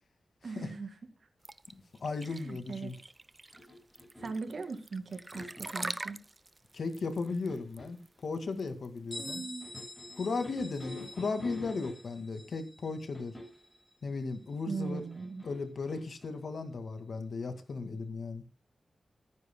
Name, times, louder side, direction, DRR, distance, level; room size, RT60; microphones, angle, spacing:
voice 1, 0.4-1.0 2.2-2.9 4.2-6.2 9.2-9.7 14.7-15.4, right 4 dB, 60° right, 7 dB, 2.2 m, -39 dB
sound 1, 1.4-9.1, right 2 dB, 25° right, 0.6 m, -43 dB
voice 2, 2.0-2.9 6.7-9.4 10.2-13.4 14.0-15.0 15.4-18.4, left 4 dB, 70° left, 8 dB, 2.0 m, -36 dB
sound 2, 3.5-4.5 5.1-5.8 6.8-8.0 9.6-12.3 13.1-13.7 14.8-16.3, left 1 dB, 10° left, 6.9 m, -48 dB
Bell, 9.1-14.6, left 1 dB, 30° left, 7.8 m, -48 dB
24.0 x 9.7 x 2.2 m, 0.28 s
wide cardioid pair, 105°, 0 cm